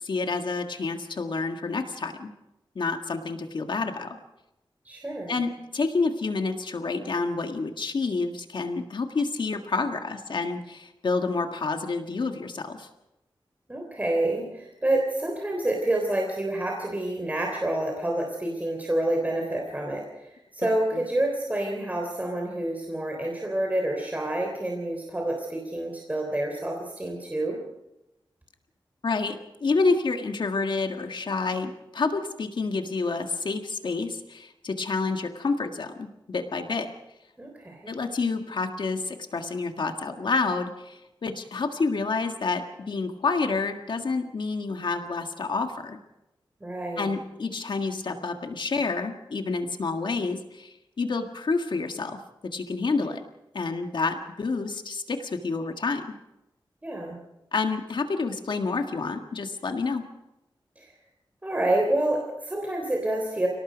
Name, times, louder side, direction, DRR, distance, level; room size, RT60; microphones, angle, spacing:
voice 1, 0.0-2.3 2.8-4.2 5.3-12.9 20.9-21.0 29.0-36.9 37.9-46.0 47.0-53.2 53.5-56.1 57.5-60.0, left 4 dB, 65° left, 5 dB, 1.7 m, -29 dB
voice 2, 4.9-5.4 13.7-27.6 37.4-37.9 46.6-47.1 56.8-57.2 60.8-60.9 61.4-63.5, right 1 dB, 15° right, 1 dB, 3.5 m, -28 dB
30.0 x 18.5 x 5.2 m, 0.92 s
wide cardioid pair, 135°, 9 cm